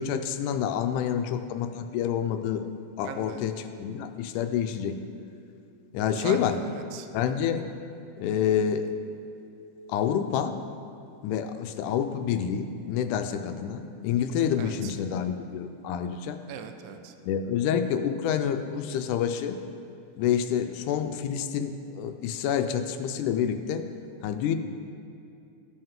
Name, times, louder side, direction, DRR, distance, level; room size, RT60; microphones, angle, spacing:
voice 1, 0.0-2.7 3.0-5.0 5.9-6.6 7.1-7.7 8.2-8.9 9.9-10.6 11.2-16.4 17.2-19.6 20.2-23.9 24.2-24.6, left 8 dB, 90° left, 7 dB, 2.1 m, -28 dB
voice 2, 3.0-3.4 6.1-7.1 14.6-14.9 16.5-17.1, right 8 dB, 85° right, 7 dB, 2.1 m, -39 dB
15.5 x 5.5 x 3.6 m, 2.5 s
omnidirectional pair, 3.5 m